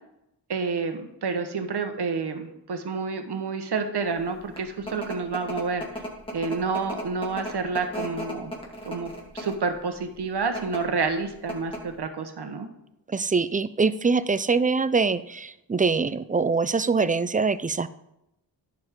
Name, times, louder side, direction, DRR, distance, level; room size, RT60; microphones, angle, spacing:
voice 1, 0.5-6.0 6.3-8.5 8.8-12.7, right 4 dB, 65° right, 7 dB, 1.3 m, -29 dB
sound 1, 4.3-9.7 10.4-10.8 11.2-11.3 11.5-12.0, equal, 10° left, 2.3 m, -35 dB
voice 2, 13.1-17.9, right 4 dB, 20° right, 15 dB, 0.4 m, -24 dB
10.5 x 7.6 x 3.7 m, 0.83 s
cardioid pair, 65°, 43 cm